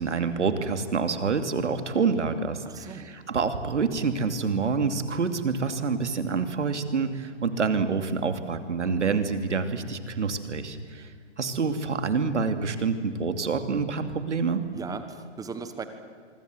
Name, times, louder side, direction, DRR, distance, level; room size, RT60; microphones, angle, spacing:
voice 1, 0.0-2.6 2.9-11.1 11.4-14.6, right 5 dB, 75° right, 8 dB, 2.8 m, -27 dB
voice 2, 2.6-3.1 8.8-9.2 14.7-15.9, right 5 dB, 10° right, 9 dB, 1.4 m, -38 dB
26.0 x 24.0 x 7.9 m, 2.1 s
hypercardioid pair, 135°, 36 cm